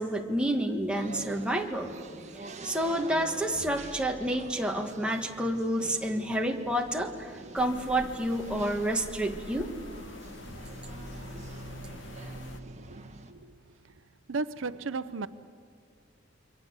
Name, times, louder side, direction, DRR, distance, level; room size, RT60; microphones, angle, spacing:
voice 1, 0.0-1.9 2.6-9.7, right 1 dB, 5° right, 2 dB, 1.6 m, -29 dB
sound 1, 0.9-13.3, right 2 dB, 35° right, 1.6 m, -45 dB
sound 2, 7.5-12.6, left 2 dB, 70° left, 1.2 m, -45 dB
voice 2, 12.6-13.7 14.3-15.3, right 4 dB, 80° right, 14 dB, 0.7 m, -36 dB
28.0 x 23.0 x 8.1 m, 2.2 s
head